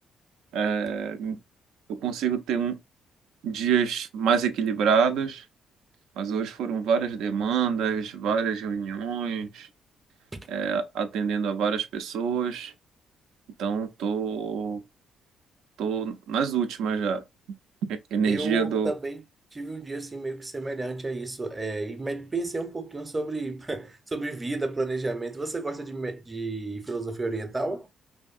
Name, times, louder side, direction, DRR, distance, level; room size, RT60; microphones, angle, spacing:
voice 1, 0.5-1.4 1.9-2.8 3.4-5.4 6.2-9.7 10.5-12.7 13.6-14.8 15.8-17.2 17.9-18.9, right 6 dB, 90° right, 0.3 m, -26 dB
voice 2, 18.2-19.2 19.5-27.9, right 2 dB, 20° right, 0.6 m, -32 dB
2.6 x 2.6 x 2.3 m
cardioid pair, 90°, 0 cm